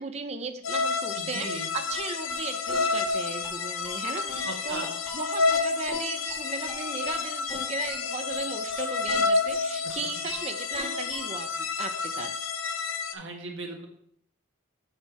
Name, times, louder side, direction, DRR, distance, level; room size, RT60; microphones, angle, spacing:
voice 1, 0.0-12.3, right 4 dB, 30° right, 8 dB, 0.4 m, -37 dB
sound 1, 0.6-13.1, left 4 dB, 75° left, 0.6 m, -29 dB
voice 2, 1.1-1.7 4.4-4.9 13.1-13.9, right 3 dB, 65° right, 2 dB, 1.3 m, -37 dB
sound 2, 1.8-11.4, left 1 dB, ahead, 1.6 m, -44 dB
7.4 x 3.6 x 4.8 m, 0.69 s
head